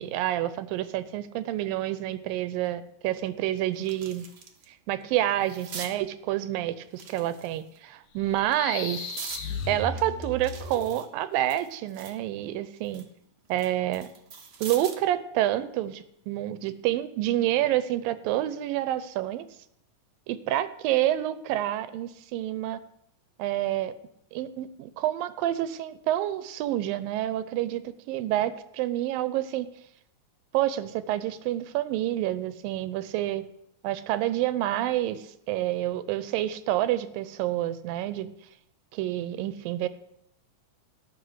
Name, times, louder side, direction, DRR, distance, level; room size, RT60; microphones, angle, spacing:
voice 1, 0.0-4.3 4.9-9.2 9.7-13.1 13.5-14.1 14.6-19.5 20.3-22.8 23.4-23.9 24.3-29.7 30.5-33.5 33.8-38.3 38.9-39.9, right 13 dB, 85° right, 14 dB, 2.4 m, -28 dB
sound 1, 2.6-2.7 3.2-4.7 5.0-5.9 6.9-7.8 8.4-9.5 10.0-12.2 12.6-15.1 16.5-16.7, right 5 dB, 70° right, 1.0 m, -43 dB
sound 2, 8.2-11.0, left 3 dB, 65° left, 2.4 m, -36 dB
12.5 x 6.3 x 8.0 m, 0.76 s
omnidirectional pair, 4.0 m